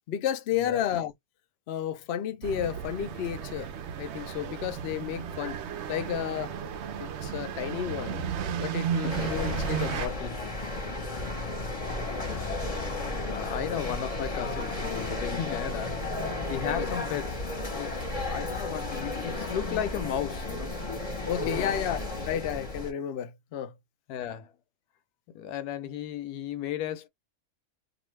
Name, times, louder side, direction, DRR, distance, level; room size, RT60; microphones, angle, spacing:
voice 1, 0.1-1.1 1.7-3.7 4.0-5.6 5.9-6.5 7.0-8.3 8.6-10.4 13.7-14.0 15.4-15.6 16.8-16.9 21.2-22.0 22.3-23.8, left 10 dB, 65° left, 0.6 m, -32 dB
sound 1, 2.4-10.1, right 8 dB, 70° right, 0.6 m, -34 dB
voice 2, 9.0-9.3 12.2-16.0 16.5-20.7 21.4-21.8 24.1-24.5 25.3-27.1, left 10 dB, 85° left, 1.1 m, -35 dB
sound 2, 9.1-22.9, left 2 dB, 30° left, 0.8 m, -33 dB
2.5 x 2.4 x 3.1 m
omnidirectional pair, 1.6 m